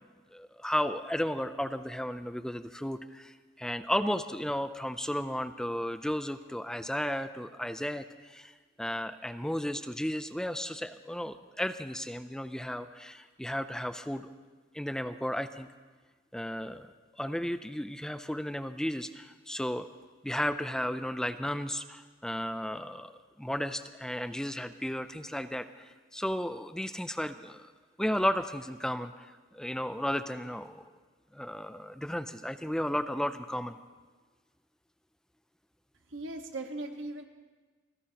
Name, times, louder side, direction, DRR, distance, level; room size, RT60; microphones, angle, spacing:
voice 1, 0.3-14.3 14.7-15.7 16.3-16.9 17.2-19.9 20.2-23.1 23.4-27.7 28.0-30.8 31.3-33.8, equal, 5° left, 10 dB, 0.4 m, -34 dB
voice 2, 36.1-37.2, right 2 dB, 70° right, 4 dB, 1.5 m, -38 dB
27.5 x 16.0 x 2.9 m, 1.4 s
head